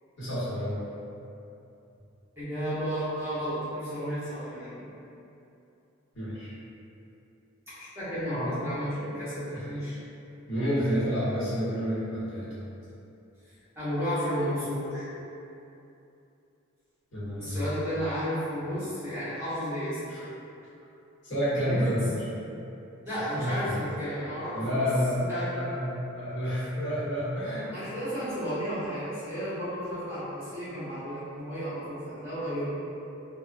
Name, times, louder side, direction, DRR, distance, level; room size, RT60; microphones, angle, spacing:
voice 1, 0.2-0.8 6.1-6.5 8.3-8.5 9.5-9.7 10.5-12.5 17.1-17.7 20.1-20.2 21.2-22.1 23.3-23.7 24.5-27.7, equal, 65° left, -11 dB, 1.1 m, -29 dB
voice 2, 2.4-4.8 7.7-10.0 13.8-15.1 17.4-20.2 21.6-22.1 23.0-24.8 25.1-25.5 27.7-32.8, equal, 15° right, -16 dB, 1.0 m, -32 dB
2.5 x 2.3 x 2.4 m, 2.8 s
head